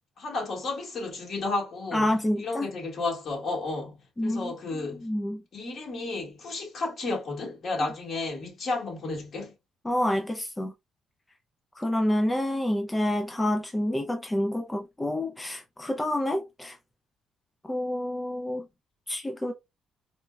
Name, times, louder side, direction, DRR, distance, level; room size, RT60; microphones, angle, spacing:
voice 1, 0.2-2.1 2.4-5.0 5.5-9.5, left 3 dB, 55° left, 1.6 m, -32 dB
voice 2, 1.9-2.7 4.2-5.4 9.8-10.7 11.8-16.8 17.7-18.6 19.1-19.5, left 1 dB, 15° left, 0.4 m, -28 dB
4.2 x 2.2 x 2.2 m
cardioid pair, 90°, 0 cm